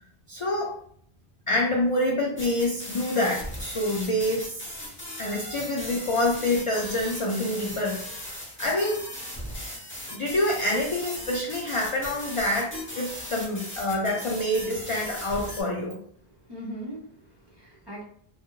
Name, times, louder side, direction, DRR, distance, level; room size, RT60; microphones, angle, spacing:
voice 1, 0.3-0.8 1.5-4.6 5.2-8.3 8.6-9.0 10.1-16.0, left 1 dB, 60° left, -2 dB, 0.3 m, -27 dB
sound 1, 2.4-15.6, equal, 15° left, 0.6 m, -38 dB
voice 2, 16.3-18.0, equal, 35° right, -4 dB, 0.4 m, -40 dB
2.3 x 2.1 x 2.9 m, 0.63 s
omnidirectional pair, 1.1 m